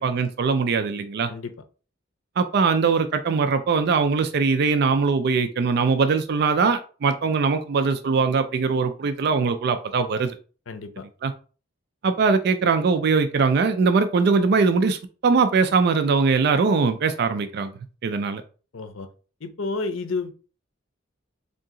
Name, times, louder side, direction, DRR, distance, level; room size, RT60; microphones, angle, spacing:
voice 1, 0.0-1.3 2.4-10.4 11.2-11.3 12.0-17.7 18.0-18.4, right 4 dB, 55° right, 9 dB, 0.4 m, -21 dB
voice 2, 10.7-11.0 18.7-19.1 19.4-20.5, left 3 dB, 85° left, 9 dB, 0.6 m, -31 dB
3.8 x 2.7 x 3.7 m, 0.37 s
head